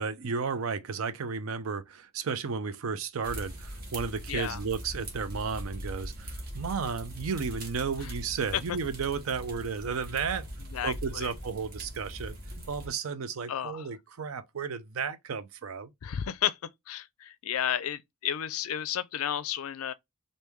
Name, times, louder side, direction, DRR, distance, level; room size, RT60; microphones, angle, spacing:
voice 1, 0.0-10.5 10.8-12.4 12.7-15.9, right 5 dB, 65° right, 0.5 m, -33 dB
sound 1, 3.2-12.9, equal, 45° right, 1.1 m, -41 dB
voice 2, 4.3-4.6 8.0-8.1 8.5-8.8 10.7-11.3 13.5-14.0 16.0-16.6 16.9-19.9, left 10 dB, 70° left, 0.4 m, -32 dB
3.1 x 2.6 x 3.4 m
head